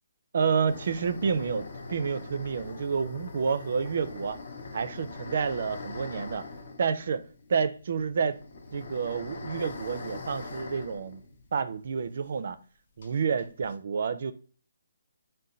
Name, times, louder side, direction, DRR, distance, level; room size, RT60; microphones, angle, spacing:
voice 1, 0.3-4.4 4.7-6.4 6.8-7.2 7.5-8.4 8.7-11.2 11.5-12.6 13.0-14.3, right 6 dB, 55° right, 0.4 m, -29 dB
sound 1, 0.7-12.1 12.3-12.4 13.0-13.7, left 3 dB, 55° left, 0.6 m, -42 dB
3.8 x 2.1 x 4.1 m
hypercardioid pair, 160°, 0 cm